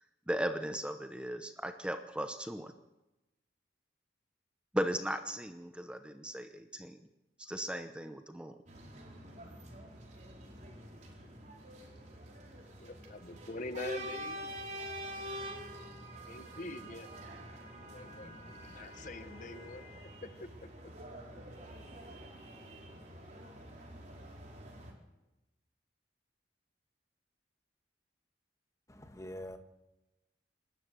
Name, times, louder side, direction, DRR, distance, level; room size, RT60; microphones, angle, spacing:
voice 1, 0.3-2.7 4.7-6.9 7.5-8.5, equal, 5° right, 0.9 m, -37 dB
sound 1, 8.7-24.9, right 1 dB, 40° right, 4.8 m, -46 dB
voice 2, 12.8-14.4 16.0-17.1 17.9-20.7, left 2 dB, 45° left, 1.1 m, -45 dB
voice 3, 28.9-29.6, left 1 dB, 20° left, 1.7 m, -44 dB
28.0 x 12.5 x 7.7 m
head